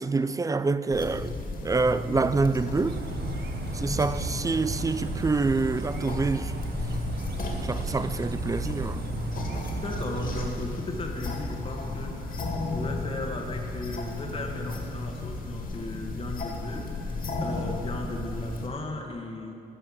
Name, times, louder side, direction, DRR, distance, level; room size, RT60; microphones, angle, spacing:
voice 1, 0.0-1.3 1.6-3.0 3.7-6.5 7.6-9.1, right 3 dB, 15° right, 0.4 m, -26 dB
sound 1, 0.9-18.7, left 2 dB, 45° left, 2.2 m, -34 dB
sound 2, 2.9-10.5, right 6 dB, 55° right, 0.9 m, -37 dB
voice 2, 9.7-19.5, left 2 dB, 30° left, 1.5 m, -36 dB
16.0 x 5.6 x 7.2 m
cardioid pair, 90°, 20 cm